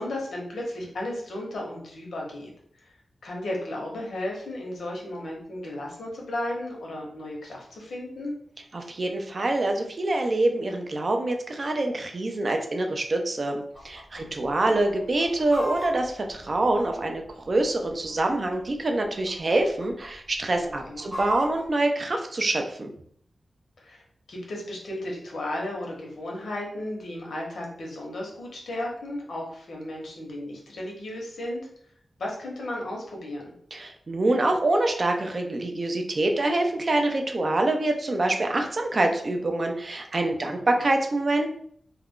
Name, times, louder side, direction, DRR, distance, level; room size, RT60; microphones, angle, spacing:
voice 1, 0.0-2.5 2.8-2.9 3.2-8.3 14.1-14.8 20.6-21.1 23.8-24.0 24.3-31.6 32.2-33.5 40.4-40.8, left 1 dB, 80° left, -1 dB, 0.9 m, -34 dB
voice 2, 8.7-22.9 33.7-41.5, right 2 dB, 40° right, 4 dB, 0.4 m, -25 dB
Chicken rooster, 13.7-14.2 14.5-14.6 15.0-17.3 18.0-18.8 19.1-19.3 19.6-20.1 20.5-21.7, right 1 dB, 25° right, 0.9 m, -36 dB
2.4 x 2.2 x 3.5 m, 0.63 s
wide cardioid pair, 160°, 0 cm